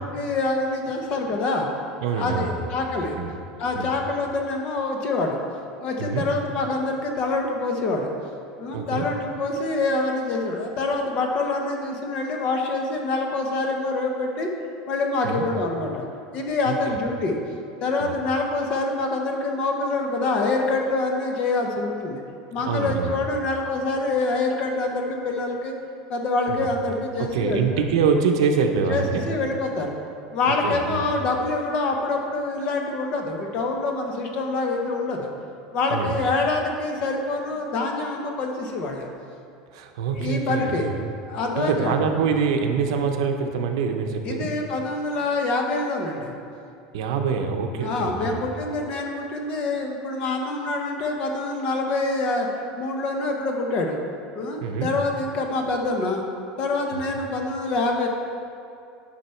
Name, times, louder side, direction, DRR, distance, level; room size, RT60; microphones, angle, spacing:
voice 1, 0.0-1.7 2.1-3.2 3.6-5.4 5.8-8.1 8.6-14.5 14.9-16.1 16.3-17.4 17.8-22.2 22.5-25.7 26.1-27.7 28.9-30.0 30.3-35.3 35.7-39.1 40.2-40.9 41.3-42.0 44.2-46.3 47.8-52.5 52.8-54.0 54.3-56.2 56.6-58.1, left 3 dB, 35° left, 2 dB, 0.9 m, -26 dB
voice 2, 2.0-2.7 3.2-3.3 3.7-3.9 6.0-6.2 8.7-9.0 15.2-15.5 16.7-16.9 18.0-18.1 22.7-23.2 26.5-26.7 27.2-29.2 30.5-31.1 35.9-36.2 39.7-41.0 41.6-44.5 46.9-48.4 54.6-54.9 56.9-57.0, right 6 dB, 80° right, 4 dB, 0.8 m, -25 dB
10.0 x 5.6 x 4.4 m, 2.6 s
cardioid pair, 175°, 3 cm